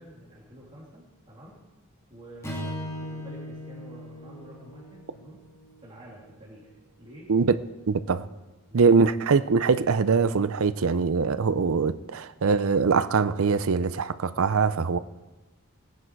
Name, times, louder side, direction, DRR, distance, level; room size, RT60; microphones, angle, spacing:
voice 1, 0.0-1.6 2.1-5.4 5.8-7.3 8.7-9.0, right 1 dB, 25° right, 2.8 m, -48 dB
Strum, 2.4-6.8, equal, 15° left, 2.0 m, -39 dB
voice 2, 7.9-8.3 8.7-15.0, right 5 dB, 75° right, 0.5 m, -22 dB
18.5 x 9.7 x 4.6 m
head